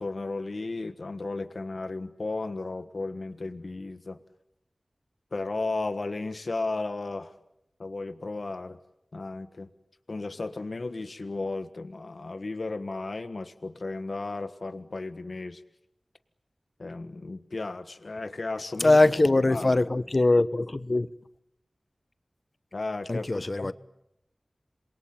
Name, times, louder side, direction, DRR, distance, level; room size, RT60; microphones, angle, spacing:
voice 1, 0.0-4.2 5.3-7.3 7.8-8.8 9.1-9.7 10.1-15.6 16.8-19.0 19.4-19.8 22.7-23.7, left 3 dB, 70° left, 1.4 m, -34 dB
voice 2, 18.8-21.1 23.1-23.7, left 2 dB, 50° left, 1.1 m, -22 dB
28.0 x 22.5 x 8.8 m
wide cardioid pair, 55°, 0 cm